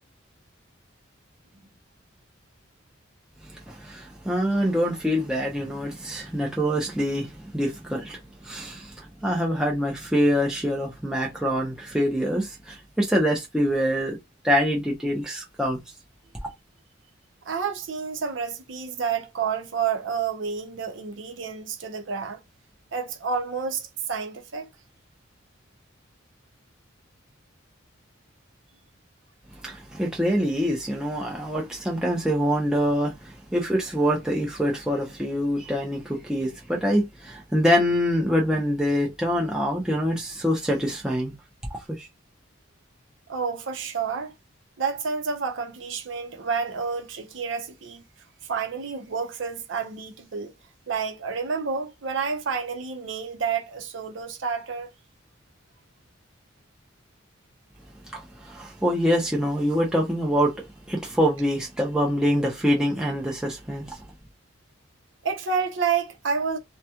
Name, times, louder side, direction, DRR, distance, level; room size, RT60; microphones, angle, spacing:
voice 1, 3.4-14.2 14.4-15.8 16.4-16.5 29.6-41.3 42.0-42.1 58.1-64.0, equal, 5° right, 0.7 m, -25 dB
voice 2, 17.4-22.4 22.9-24.7 43.3-44.3 44.8-48.0 48.4-50.5 50.9-54.9 65.2-66.6, right 6 dB, 70° right, 0.7 m, -29 dB
2.3 x 2.2 x 2.8 m
head